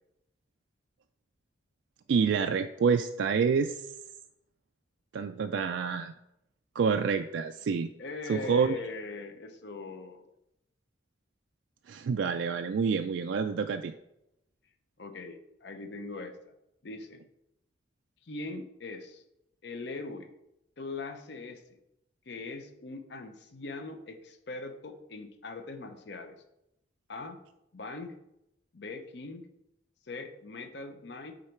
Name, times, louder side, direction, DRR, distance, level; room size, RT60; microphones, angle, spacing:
voice 1, 2.1-3.8 5.1-6.1 6.8-7.9 8.3-8.7 11.9-13.9, right 6 dB, 75° right, 7 dB, 0.3 m, -27 dB
voice 2, 8.0-10.3 15.0-16.5 16.8-17.2 18.2-19.2 19.6-20.3 20.8-21.8 22.3-26.4 27.1-27.4 27.7-28.2 28.7-29.5 30.0-31.3, left 3 dB, 65° left, 8 dB, 0.7 m, -41 dB
8.7 x 3.9 x 4.5 m, 0.85 s
head